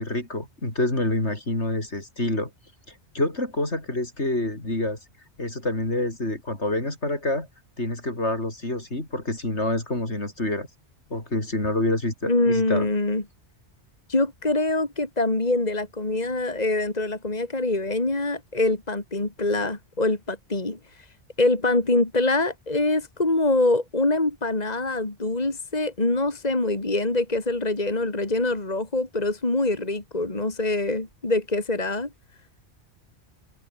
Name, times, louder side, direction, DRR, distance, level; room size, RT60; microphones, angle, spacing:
voice 1, 0.0-2.5 3.1-5.0 5.4-7.5 7.8-10.7 11.1-12.9, left 1 dB, 70° left, 6.5 m, -27 dB
voice 2, 12.3-13.2 14.1-20.8 21.4-32.1, left 2 dB, 35° left, 2.9 m, -24 dB
omnidirectional pair, 1.2 m